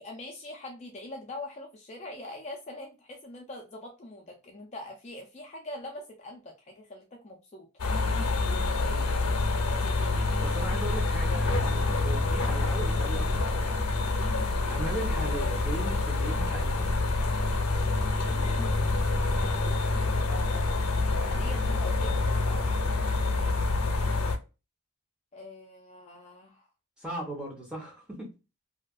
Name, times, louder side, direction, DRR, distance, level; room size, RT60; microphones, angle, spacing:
voice 1, 0.0-7.7 19.4-20.7 21.0-22.2 25.3-26.7, left 1 dB, 30° left, 0.4 m, -43 dB
sound 1, 7.8-24.4, left 3 dB, 85° left, 0.6 m, -27 dB
voice 2, 8.8-9.2 10.4-13.8 14.7-16.8 22.5-22.7 27.0-28.3, right 1 dB, 5° right, 0.8 m, -38 dB
2.7 x 2.4 x 2.2 m
head